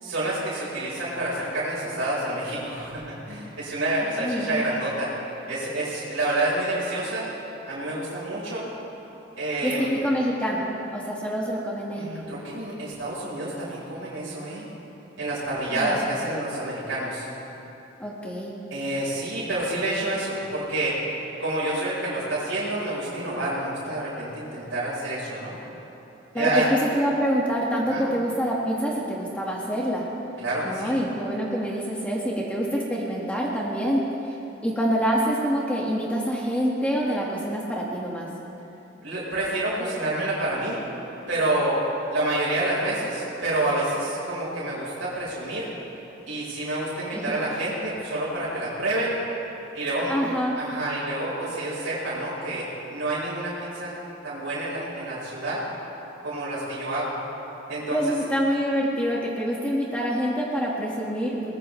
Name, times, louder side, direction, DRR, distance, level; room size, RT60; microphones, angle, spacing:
voice 1, 0.0-5.1 5.5-7.3 7.7-8.7 9.4-9.9 11.9-14.7 15.2-17.3 18.7-21.0 21.4-25.6 26.3-26.7 27.9-28.1 30.4-30.9 39.0-40.8 41.3-41.8 42.1-45.7 46.3-49.2 49.7-50.2 50.6-52.7 52.9-53.9 54.2-55.6 56.2-57.1 57.7-58.0, right 1 dB, 85° right, -8 dB, 4.3 m, -28 dB
voice 2, 4.2-4.7 9.6-12.1 15.7-15.9 18.0-18.5 26.3-30.1 30.6-34.0 34.6-38.3 47.1-47.4 50.1-50.6 57.9-61.6, equal, 5° left, -4 dB, 1.6 m, -26 dB
22.0 x 19.5 x 3.2 m, 2.9 s
head